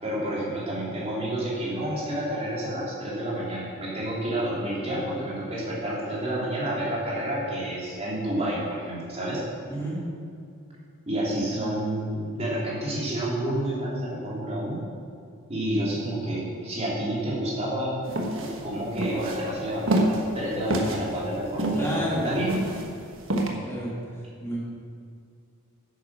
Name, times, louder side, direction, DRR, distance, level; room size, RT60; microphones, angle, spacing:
voice 1, 0.0-9.4 11.1-14.8 15.5-18.0 18.3-22.6, right 1 dB, 30° right, -6 dB, 3.4 m, -29 dB
sound 1, 18.1-23.5, right 1 dB, 60° right, 1.4 m, -27 dB
voice 2, 21.7-22.5 23.6-23.9 24.4-24.6, equal, 10° left, -7 dB, 3.2 m, -30 dB
10.5 x 9.2 x 6.3 m, 2.4 s
head